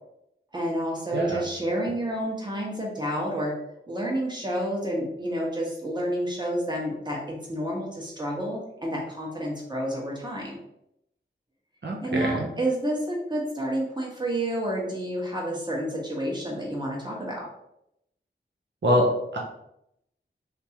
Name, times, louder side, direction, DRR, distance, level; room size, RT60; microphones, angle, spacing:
voice 1, 0.5-3.5 3.9-10.6 12.0-17.5, right 1 dB, 25° right, -3 dB, 1.3 m, -29 dB
voice 2, 1.1-1.4 11.8-12.5 18.8-19.4, equal, 65° right, -2 dB, 0.7 m, -24 dB
3.6 x 2.9 x 2.9 m, 0.79 s
wide cardioid pair, 70°, 19 cm